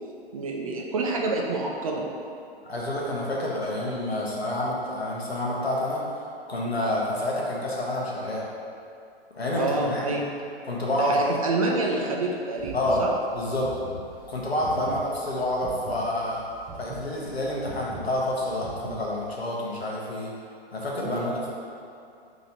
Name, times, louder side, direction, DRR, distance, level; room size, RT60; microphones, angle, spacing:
voice 1, 0.3-2.1 9.5-10.2 10.9-13.1 14.8-14.9 21.0-21.3, right 3 dB, 35° right, -1 dB, 0.4 m, -28 dB
voice 2, 2.7-6.0 6.5-8.4 9.3-10.1 10.6-11.3 12.7-13.0 13.3-13.7 14.3-16.4 16.7-20.3 20.7-21.5, left 1 dB, 80° left, -4 dB, 0.9 m, -28 dB
sound 1, 12.6-19.3, right 3 dB, 20° right, 0.9 m, -41 dB
3.0 x 2.9 x 4.1 m, 2.5 s
figure-of-eight pair, 115°, 31 cm